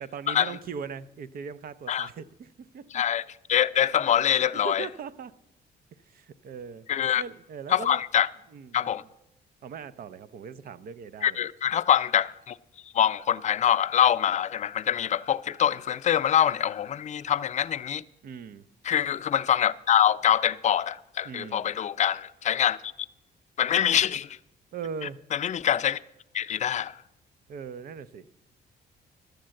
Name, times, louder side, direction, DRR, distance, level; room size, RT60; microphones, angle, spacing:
voice 1, 0.0-3.0 4.5-5.3 6.0-6.9 7.2-8.0 8.5-8.9 9.6-11.4 18.2-18.6 21.2-21.7 24.7-25.2 27.5-28.3, right 6 dB, 55° right, 0.5 m, -39 dB
voice 2, 3.5-4.9 6.9-7.2 7.7-8.3 8.7-9.0 11.2-12.6 12.9-18.0 18.8-22.9 23.6-24.4 25.3-26.0 26.3-27.0, left 10 dB, 40° left, 0.4 m, -24 dB
11.5 x 7.8 x 7.5 m
cardioid pair, 115°, 18 cm